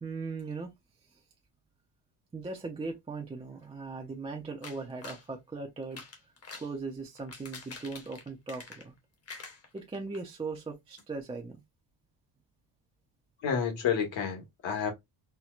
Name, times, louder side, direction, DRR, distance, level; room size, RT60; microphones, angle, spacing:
voice 1, 0.0-0.7 1.1-1.2 2.3-6.0 6.6-8.9 9.7-11.6, right 4 dB, 15° right, 0.4 m, -39 dB
sound 1, 4.6-5.3 5.8-6.7 7.2-9.0 9.3-10.2 10.6-10.7 11.0-11.1, left 4 dB, 30° left, 0.8 m, -46 dB
voice 2, 13.4-14.9, left 7 dB, 70° left, 1.4 m, -30 dB
4.3 x 2.1 x 2.4 m
wide cardioid pair, 175°, 46 cm